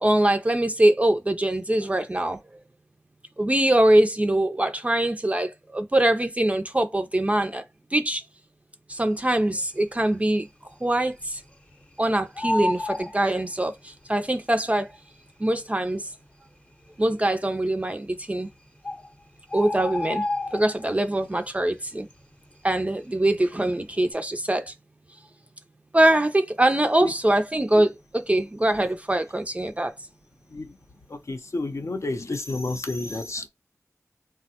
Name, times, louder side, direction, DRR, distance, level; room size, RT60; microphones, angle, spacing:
voice 1, 0.0-2.4 3.4-7.6 7.9-8.2 8.9-10.5 10.8-11.4 12.0-13.7 14.1-14.9 15.4-16.0 17.0-18.5 19.5-20.2 20.5-22.1 22.6-24.7 25.9-29.9, right 1 dB, 25° right, 0.4 m, -23 dB
Bird, 9.4-10.0 10.4-10.5 10.7-11.9 12.2-14.0 14.9-15.0 15.6-15.7 15.9-16.0 16.6-17.1 18.1-18.2 18.5-18.6 18.8-21.1 21.5-21.8 22.1-23.5 23.8-24.1, left 2 dB, 20° left, 0.7 m, -31 dB
voice 2, 31.1-33.5, left 2 dB, 55° left, 0.5 m, -30 dB
3.4 x 2.1 x 2.7 m
wide cardioid pair, 50°, 6 cm